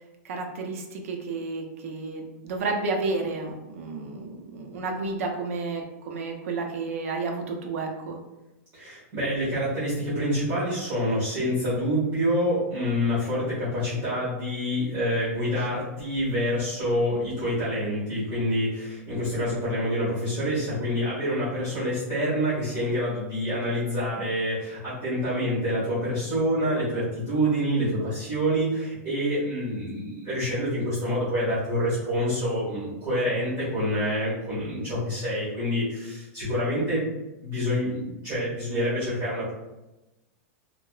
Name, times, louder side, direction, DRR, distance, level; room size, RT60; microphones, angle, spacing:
voice 1, 0.2-8.2, right 3 dB, 65° right, 2 dB, 0.5 m, -31 dB
voice 2, 8.7-37.1 37.4-39.5, equal, 25° right, -10 dB, 1.3 m, -27 dB
2.7 x 2.0 x 2.3 m, 0.99 s
supercardioid pair, 175°, 8 cm